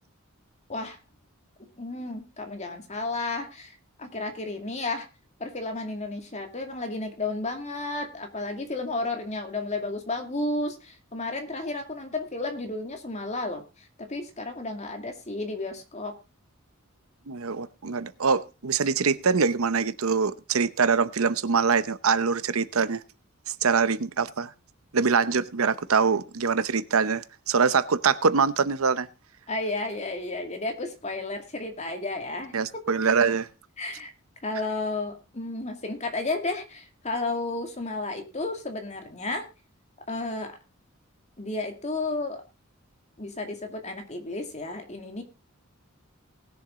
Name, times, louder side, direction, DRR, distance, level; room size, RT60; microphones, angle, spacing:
voice 1, 1.8-5.1 5.4-16.1 29.5-32.6 33.1-33.2 33.8-34.1 34.4-39.5 40.1-40.5 41.4-42.4 43.2-45.2, left 2 dB, 35° left, 2.3 m, -32 dB
voice 2, 17.3-23.0 23.5-24.5 24.9-29.1 32.5-33.5, right 5 dB, 90° right, 0.8 m, -24 dB
19.5 x 7.1 x 3.7 m
head